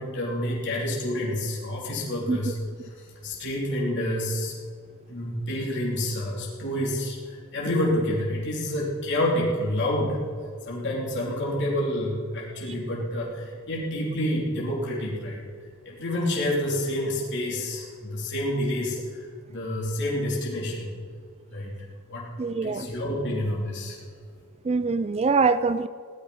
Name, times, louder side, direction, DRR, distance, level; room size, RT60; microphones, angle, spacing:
voice 1, 0.0-2.6 2.8-4.5 5.1-10.2 10.6-15.5 15.8-21.0 21.5-21.8 22.1-22.3 22.6-24.0, left 1 dB, 55° left, -4 dB, 3.0 m, -28 dB
voice 2, 22.4-22.9 24.6-25.9, right 4 dB, 30° right, 13 dB, 0.3 m, -23 dB
17.0 x 12.0 x 5.4 m, 2.2 s
head